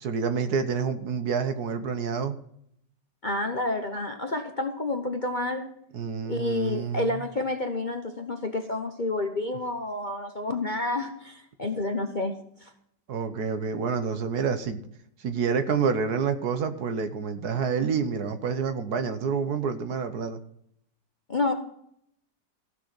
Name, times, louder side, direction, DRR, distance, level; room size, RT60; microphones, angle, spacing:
voice 1, 0.0-2.4 5.9-7.2 13.1-14.8 15.2-20.4, right 6 dB, 60° right, 9 dB, 1.5 m, -28 dB
voice 2, 3.2-5.7 6.3-12.7 21.3-21.5, left 2 dB, 35° left, 5 dB, 0.9 m, -29 dB
15.0 x 6.6 x 7.7 m, 0.70 s
omnidirectional pair, 1.9 m